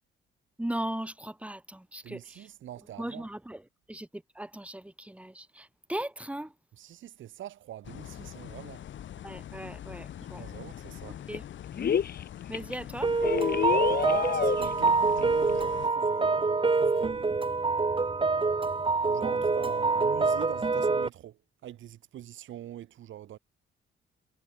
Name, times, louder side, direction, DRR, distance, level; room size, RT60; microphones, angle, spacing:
voice 1, 0.6-2.5 3.0-3.6 3.9-6.5 9.2-10.4 11.1-11.4 12.5-13.1, right 1 dB, 5° right, 7.6 m, -38 dB
voice 2, 2.0-3.3 6.8-8.8 10.4-11.2 13.6-17.5 19.0-23.4, right 12 dB, 75° right, 6.2 m, -43 dB
sound 1, 7.8-15.9, left 11 dB, 70° left, 6.3 m, -43 dB
sound 2, 10.4-10.5 10.7-11.4 11.7-12.2 12.5-12.7 13.2-14.9 15.2-15.3 15.5-15.6, left 8 dB, 50° left, 2.6 m, -28 dB
sound 3, 13.0-21.1, right 4 dB, 25° right, 4.3 m, -26 dB
cardioid pair, 90°, 20 cm